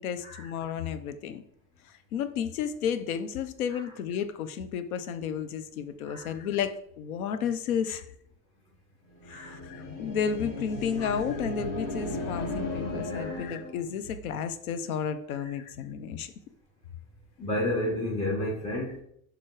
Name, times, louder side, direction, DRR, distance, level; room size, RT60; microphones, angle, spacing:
voice 1, 0.0-1.4 2.1-8.0 9.3-16.3, left 7 dB, 90° left, 10 dB, 0.9 m, -32 dB
sound 1, 9.2-13.8, left 2 dB, 75° left, 3.1 m, -35 dB
voice 2, 9.3-9.6 11.0-11.2 13.1-13.4 17.4-19.0, left 1 dB, 15° left, -7 dB, 3.7 m, -31 dB
7.9 x 5.5 x 4.9 m, 0.68 s
supercardioid pair, 95°, 41 cm